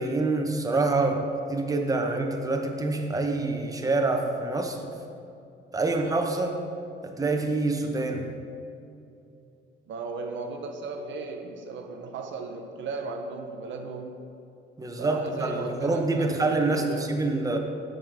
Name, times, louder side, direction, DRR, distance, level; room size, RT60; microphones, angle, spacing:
voice 1, 0.0-4.9 5.7-6.6 7.0-8.3 14.8-17.6, right 3 dB, 15° right, 3 dB, 0.8 m, -26 dB
voice 2, 9.9-14.3 15.0-17.3, right 4 dB, 70° right, 4 dB, 0.6 m, -36 dB
7.1 x 6.5 x 3.4 m, 2.6 s
cardioid pair, 90°, 20 cm